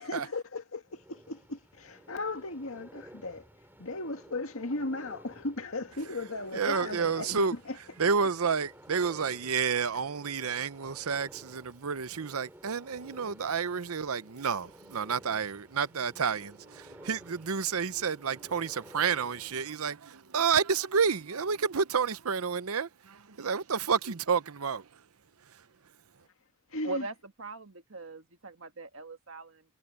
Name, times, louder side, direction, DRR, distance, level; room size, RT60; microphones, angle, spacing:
voice 1, 0.0-3.5 3.8-8.1 26.7-27.1, left 2 dB, 70° left, 2.0 m, -37 dB
sound 1, 0.8-19.8, right 1 dB, 10° right, 5.3 m, -54 dB
voice 2, 6.5-7.5 8.0-24.8, right 6 dB, 80° right, 0.8 m, -30 dB
voice 3, 26.8-29.6, right 2 dB, 65° right, 1.5 m, -40 dB
head